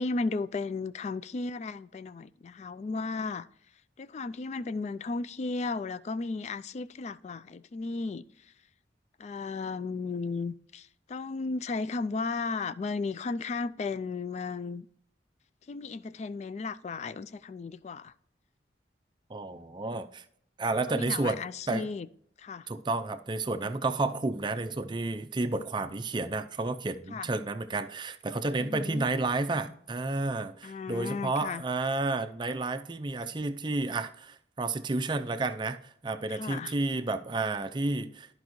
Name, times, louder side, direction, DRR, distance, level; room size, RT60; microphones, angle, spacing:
voice 1, 0.0-3.5 4.0-8.2 9.2-14.9 15.7-18.1 20.9-22.1 22.4-22.7 27.1-27.3 28.6-29.0 30.6-31.6 36.3-36.7, left 3 dB, 40° left, 0.3 m, -34 dB
voice 2, 19.3-20.2 20.6-21.4 21.7-21.9 22.7-38.3, right 2 dB, 25° right, 0.5 m, -31 dB
13.5 x 5.2 x 3.1 m
head